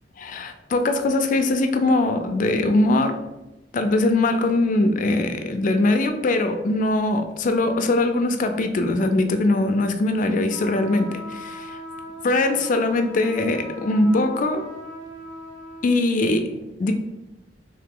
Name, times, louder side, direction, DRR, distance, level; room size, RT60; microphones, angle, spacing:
voice 1, 0.2-3.2 3.7-11.8 12.2-14.6 15.8-16.5 16.8-16.9, left 2 dB, 45° left, 7 dB, 0.4 m, -21 dB
sound 1, 10.5-15.9, left 1 dB, 65° right, 1.3 m, -39 dB
3.1 x 2.9 x 3.7 m, 0.97 s
head